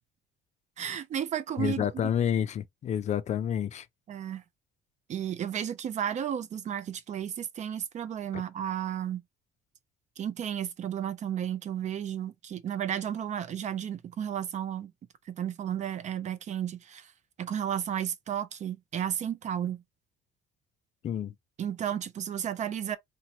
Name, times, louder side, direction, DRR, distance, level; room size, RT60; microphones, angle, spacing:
voice 1, 0.8-1.9 4.1-4.4 5.1-9.2 10.2-14.9 15.3-17.1 17.4-19.8 21.6-23.0, right 9 dB, 45° right, 0.5 m, -33 dB
voice 2, 1.6-3.9 8.3-8.4 21.0-21.3, left 9 dB, 45° left, 0.4 m, -29 dB
2.9 x 2.1 x 2.9 m
cardioid pair, 110°, 17 cm